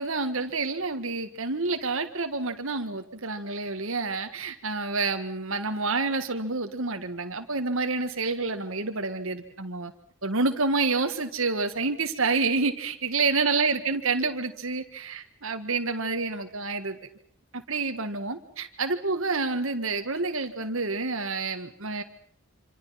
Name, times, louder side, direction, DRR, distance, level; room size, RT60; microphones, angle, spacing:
voice 1, 0.0-9.9 10.2-17.0 17.5-22.0, right 3 dB, 65° right, 6 dB, 1.7 m, -28 dB
26.5 x 26.5 x 5.8 m, 0.62 s
head